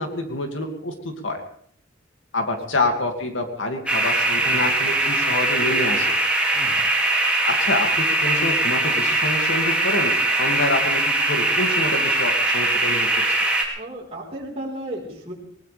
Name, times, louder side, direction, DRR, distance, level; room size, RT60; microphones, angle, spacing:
voice 1, 0.0-1.4 2.3-6.1 7.5-10.1 10.4-13.1, left 2 dB, 80° left, 4 dB, 2.4 m, -27 dB
sound 1, 3.9-13.6, right 2 dB, 5° right, 2.6 m, -21 dB
voice 2, 13.8-15.3, right 1 dB, 30° right, -3 dB, 4.5 m, -34 dB
20.0 x 19.5 x 3.4 m, 0.65 s
head